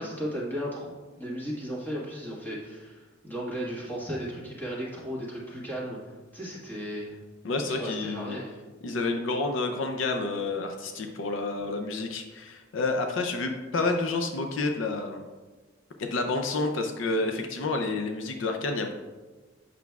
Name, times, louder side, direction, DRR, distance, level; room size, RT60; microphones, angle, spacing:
voice 1, 0.0-6.0 6.3-7.1 7.7-8.5, equal, 10° left, -5 dB, 1.5 m, -35 dB
voice 2, 7.4-8.4 8.8-15.2 16.0-18.9, left 3 dB, 70° left, 4 dB, 0.5 m, -29 dB
8.1 x 5.9 x 2.3 m, 1.3 s
head